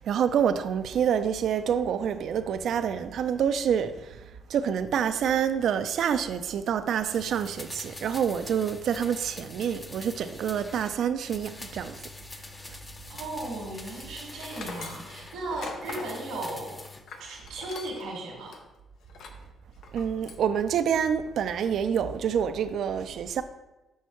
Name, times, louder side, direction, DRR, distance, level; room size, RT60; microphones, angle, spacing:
voice 1, 0.0-4.2 4.5-12.0 19.9-23.4, right 8 dB, 70° right, 0.4 m, -27 dB
sound 1, 7.1-11.0 11.3-15.4 15.8-17.1 17.4-17.5, left 2 dB, 20° left, 0.6 m, -44 dB
voice 2, 13.1-16.8 17.2-18.6, right 2 dB, 90° right, 1.4 m, -36 dB
Tools, 14.4-18.1 18.5-18.6 19.1-19.5 19.8-20.5, left 4 dB, 75° left, 0.7 m, -42 dB
5.8 x 5.4 x 3.1 m
cardioid pair, 90°, 0 cm